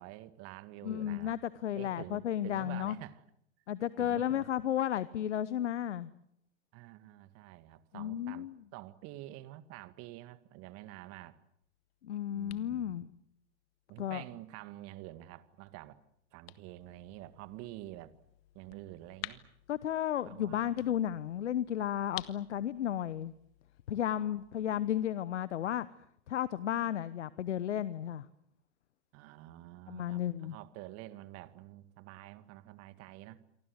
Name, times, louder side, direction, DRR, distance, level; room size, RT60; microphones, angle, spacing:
voice 1, 0.0-1.3 1.7-3.2 4.0-4.5 6.7-11.4 12.3-13.0 13.9-16.0 16.3-18.1 18.5-19.5 20.2-21.0 24.1-24.4 29.1-33.4, right 16 dB, 45° right, 14 dB, 2.0 m, -48 dB
voice 2, 0.8-3.0 3.7-6.1 7.9-8.6 12.0-13.1 14.0-14.2 19.7-23.3 23.9-25.9 26.3-28.2 29.9-30.6, left 10 dB, 75° left, 18 dB, 1.0 m, -33 dB
sound 1, 11.6-25.1, left 16 dB, 60° left, 1.7 m, -53 dB
28.0 x 24.0 x 8.1 m, 0.74 s
hypercardioid pair, 100°, 35 cm